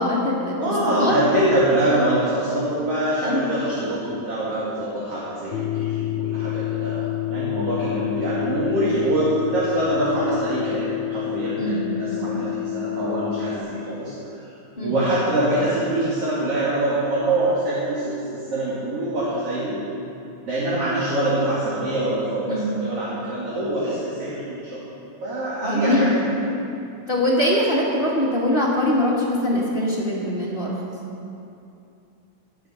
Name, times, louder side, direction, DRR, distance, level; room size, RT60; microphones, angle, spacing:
voice 1, 0.0-0.5 0.9-1.1 3.2-3.4 11.6-11.8 12.1-12.4 14.8-15.0 22.5-22.8 25.6-26.1 27.1-30.7, left 1 dB, 20° left, -5 dB, 1.6 m, -22 dB
voice 2, 0.6-14.5 14.8-19.8 20.4-24.8 25.2-26.1, right 1 dB, 55° right, -8 dB, 3.0 m, -24 dB
sound 1, 5.5-13.6, left 16 dB, 85° left, 2.0 m, -28 dB
20.0 x 7.6 x 5.7 m, 2.7 s
omnidirectional pair, 3.4 m